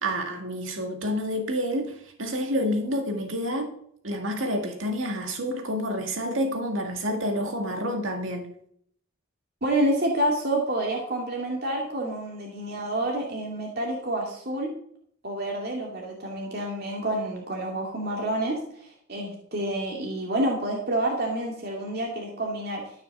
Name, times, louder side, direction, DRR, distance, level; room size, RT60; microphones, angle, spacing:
voice 1, 0.0-3.7 4.0-8.5, equal, 85° right, 2.0 m, -28 dB
voice 2, 9.6-14.7 15.2-22.8, right 1 dB, 50° right, 2.3 m, -28 dB
13.5 x 6.8 x 7.2 m
head